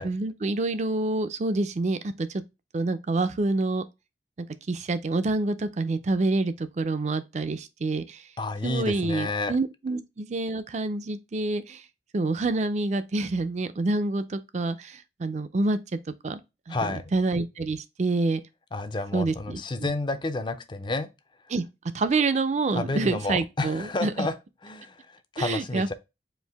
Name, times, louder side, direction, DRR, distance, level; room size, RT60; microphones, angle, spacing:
voice 1, 0.0-2.4 2.7-3.8 4.4-8.3 8.6-11.8 12.1-15.8 16.2-16.4 16.7-18.4 19.1-19.9 21.5-21.6 21.9-24.3 25.4-25.9, right 3 dB, 40° right, 0.4 m, -27 dB
voice 2, 8.4-9.6 16.7-17.0 18.7-21.1 22.7-24.4 24.6-25.9, left 2 dB, 25° left, 0.4 m, -30 dB
4.5 x 2.7 x 3.4 m
head